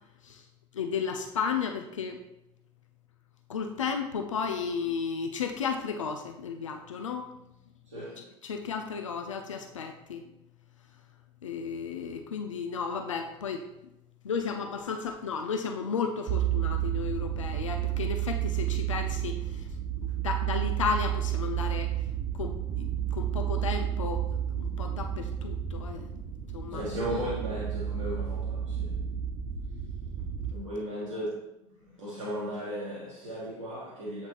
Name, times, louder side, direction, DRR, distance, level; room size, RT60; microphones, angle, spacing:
voice 1, 0.7-2.2 3.5-7.3 8.2-10.2 11.4-13.6 14.2-19.7 20.0-21.9 22.4-24.3 24.6-26.1 26.5-26.8, left 6 dB, 80° left, 0.4 m, -33 dB
voice 2, 7.9-8.2 26.7-29.0 30.5-34.3, equal, 80° right, 1.5 m, -36 dB
sound 1, 16.3-30.5, right 11 dB, 45° right, 0.5 m, -31 dB
7.9 x 4.3 x 2.9 m
figure-of-eight pair, 55°, 16 cm